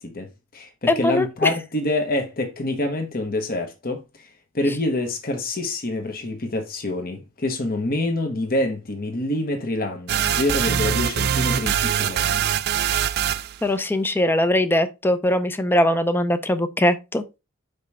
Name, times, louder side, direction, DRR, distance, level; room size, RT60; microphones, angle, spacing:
voice 1, 0.0-4.0 4.5-12.4, left 2 dB, 45° left, 1.2 m, -26 dB
voice 2, 0.9-1.5 13.6-17.2, left 1 dB, 10° left, 0.5 m, -21 dB
sound 1, 10.1-13.6, right 9 dB, 50° right, 0.4 m, -23 dB
5.4 x 4.9 x 4.1 m
head